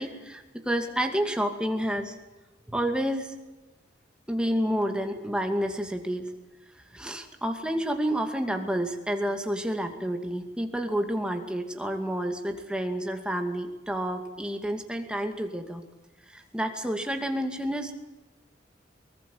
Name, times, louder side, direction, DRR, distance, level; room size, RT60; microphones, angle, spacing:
voice 1, 0.0-2.2 2.7-3.3 4.3-6.3 6.9-15.8 16.3-17.9, equal, 5° right, 5 dB, 2.4 m, -29 dB
24.0 x 19.5 x 7.4 m, 1.1 s
head